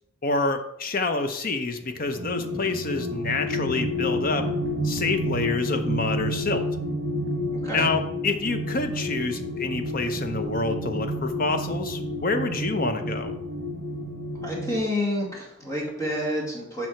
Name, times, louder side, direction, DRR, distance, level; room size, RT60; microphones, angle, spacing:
voice 1, 0.2-4.5 4.8-6.6 7.7-13.3, left 3 dB, 50° left, 7 dB, 0.8 m, -27 dB
sound 1, 2.0-14.8, equal, 70° right, 1.1 m, -30 dB
voice 2, 14.4-16.9, left 1 dB, 20° left, -4 dB, 2.3 m, -29 dB
7.6 x 5.4 x 4.5 m, 0.77 s
head